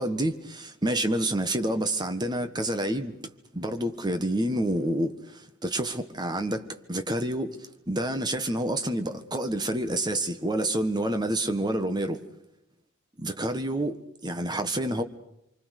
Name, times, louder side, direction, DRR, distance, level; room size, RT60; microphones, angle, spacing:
voice 1, 0.0-3.2 3.5-6.6 6.9-7.6 7.9-12.2 13.2-15.0, right 1 dB, 20° right, 1.4 m, -28 dB
26.5 x 24.5 x 6.6 m
head